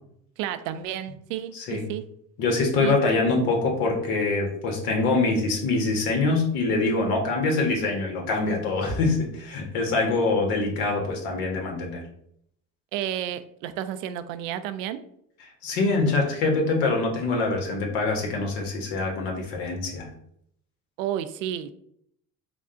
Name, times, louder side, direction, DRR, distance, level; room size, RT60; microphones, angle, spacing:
voice 1, 0.4-2.0 2.8-3.0 12.9-15.0 21.0-21.7, right 11 dB, 90° right, 12 dB, 0.5 m, -31 dB
voice 2, 1.5-1.9 2.4-12.0 15.6-20.1, left 3 dB, 80° left, 1 dB, 1.4 m, -24 dB
5.0 x 2.3 x 3.8 m, 0.69 s
supercardioid pair, 85°, 38 cm